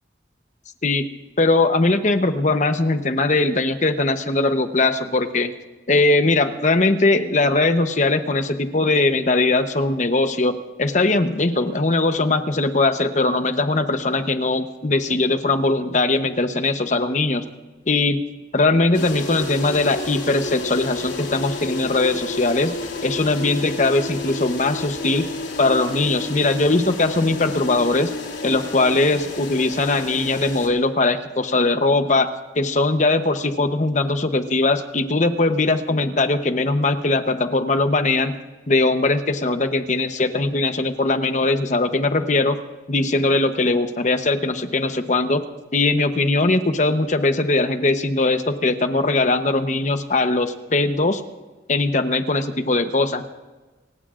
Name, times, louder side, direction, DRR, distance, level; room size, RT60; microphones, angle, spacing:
voice 1, 1.4-5.5 5.9-17.4 17.9-18.2 18.5-22.8 23.0-25.3 25.6-28.1 28.4-32.3 32.6-38.4 38.7-42.6 42.9-45.4 45.7-51.2 51.7-53.3, left 2 dB, 45° left, 8 dB, 0.9 m, -20 dB
sound 1, 18.9-30.7, left 2 dB, 85° left, 3.0 m, -31 dB
29.5 x 16.0 x 2.5 m, 1.2 s
head